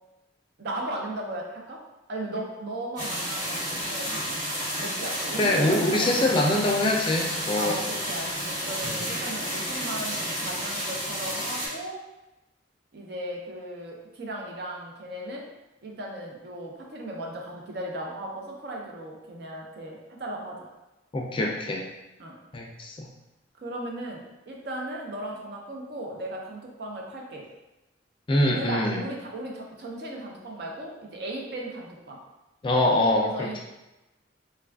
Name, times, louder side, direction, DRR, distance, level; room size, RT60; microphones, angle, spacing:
voice 1, 0.6-1.8 2.1-4.4 4.8-6.1 7.6-10.1 10.4-12.0 12.9-15.5 15.8-20.7 22.2-22.3 23.6-27.5 28.5-32.2 33.2-33.6, right 1 dB, 65° right, -1 dB, 0.5 m, -36 dB
sound 1, 3.0-11.7, equal, 45° right, 1.2 m, -31 dB
voice 2, 5.4-7.8 8.8-9.0 21.1-21.8 22.5-23.1 28.3-29.0 32.6-33.6, left 1 dB, 30° left, -1 dB, 0.4 m, -24 dB
3.3 x 2.3 x 2.3 m, 0.99 s
head